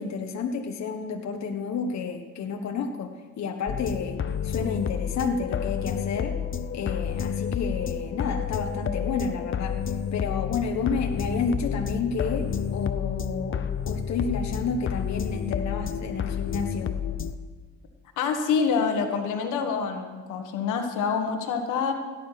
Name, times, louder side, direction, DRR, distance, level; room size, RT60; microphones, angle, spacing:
voice 1, 0.0-3.1 3.4-6.4 6.7-9.8 10.1-16.9, left 5 dB, 65° left, 4 dB, 1.3 m, -30 dB
sound 1, 3.7-17.3, left 7 dB, 40° left, 0.8 m, -30 dB
voice 2, 18.2-21.9, left 6 dB, 90° left, 5 dB, 1.6 m, -26 dB
17.0 x 9.8 x 5.8 m, 1.4 s
cardioid pair, 90°, 30 cm